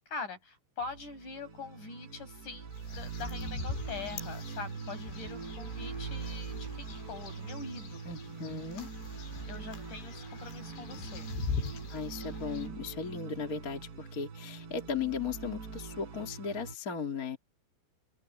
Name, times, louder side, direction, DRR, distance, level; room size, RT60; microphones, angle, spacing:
voice 1, 0.0-8.2 9.5-11.3, left 4 dB, 45° left, 9.1 m, -43 dB
sound 1, 0.8-16.7, right 5 dB, 65° right, 7.7 m, -42 dB
sound 2, 2.7-12.7, left 6 dB, 75° left, 6.0 m, -43 dB
voice 2, 8.0-8.9 11.9-17.4, left 6 dB, 30° left, 1.9 m, -36 dB
omnidirectional pair, 5.2 m